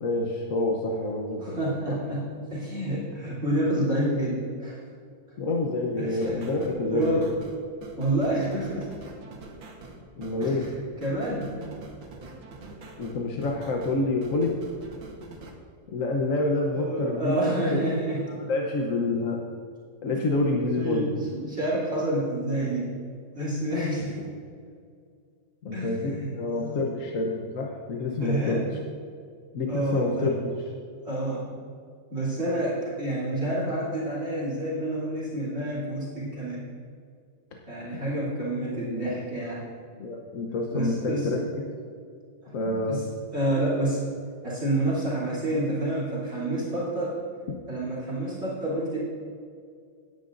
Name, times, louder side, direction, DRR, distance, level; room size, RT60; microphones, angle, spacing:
voice 1, 0.0-1.6 1.9-2.0 5.4-7.3 10.2-10.7 13.0-14.5 15.9-17.4 17.7-17.8 18.2-19.4 20.0-21.1 22.6-22.8 25.6-28.6 29.5-30.7 38.7-39.1 40.0-41.4 42.5-43.0, left 2 dB, 55° left, 0 dB, 1.0 m, -28 dB
voice 2, 1.4-4.8 6.0-7.3 8.0-8.9 10.4-10.5 11.0-11.6 16.7-18.3 20.8-22.9 23.3-24.2 25.7-26.8 28.2-28.6 29.7-30.3 31.0-31.5 32.1-36.6 37.7-39.6 40.7-41.3 42.4-43.1 43.3-44.0 44.4-47.2 47.7-49.0, right 1 dB, 35° right, -6 dB, 3.2 m, -28 dB
sound 1, 6.2-15.5, right 3 dB, 85° right, 2.1 m, -44 dB
17.0 x 9.5 x 2.6 m, 2.2 s
omnidirectional pair, 2.1 m